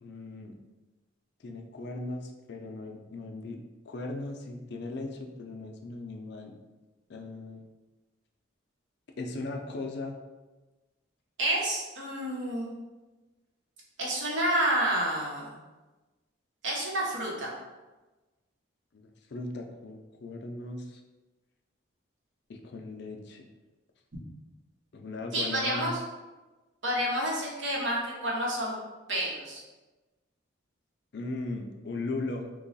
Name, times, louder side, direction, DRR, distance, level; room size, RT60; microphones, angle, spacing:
voice 1, 0.0-0.5 1.4-6.5 7.1-7.7 9.2-10.2 18.9-21.0 22.5-23.5 24.9-26.0 31.1-32.5, left 2 dB, 55° left, 3 dB, 0.4 m, -38 dB
voice 2, 11.4-12.8 14.0-15.5 16.6-17.5 25.3-26.0 26.8-28.8 29.1-29.6, right 1 dB, 75° right, -3 dB, 0.9 m, -29 dB
3.0 x 2.3 x 3.9 m, 1.2 s
head